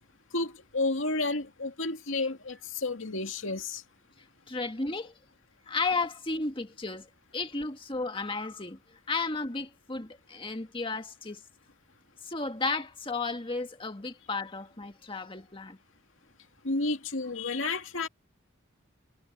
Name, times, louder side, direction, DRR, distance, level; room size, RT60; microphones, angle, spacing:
voice 1, 0.3-3.8 16.6-18.1, left 3 dB, 70° left, 2.4 m, -31 dB
voice 2, 4.5-5.1 5.7-7.1 7.3-11.4 12.2-15.8, left 3 dB, 25° left, 1.7 m, -33 dB
head